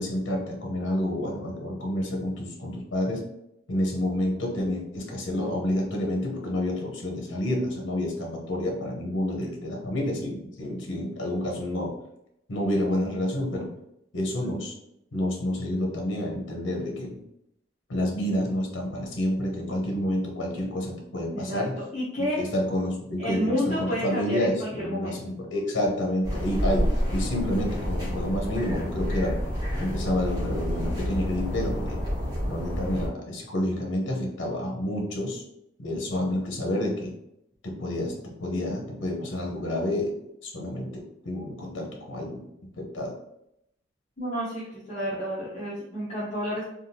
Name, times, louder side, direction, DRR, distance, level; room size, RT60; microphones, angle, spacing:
voice 1, 0.0-3.2 3.7-11.9 12.5-13.7 14.1-14.7 15.1-17.2 17.9-21.7 22.2-29.4 29.8-32.0 32.4-35.4 35.8-37.1 37.6-40.1 40.4-42.5 42.8-43.1, left 1 dB, 75° left, 0 dB, 0.8 m, -29 dB
voice 2, 21.3-22.4 23.2-25.2 44.2-46.6, equal, 40° left, -10 dB, 0.8 m, -30 dB
sound 1, 26.2-33.1, equal, 25° right, 1.3 m, -29 dB
3.5 x 2.3 x 2.7 m, 0.81 s
head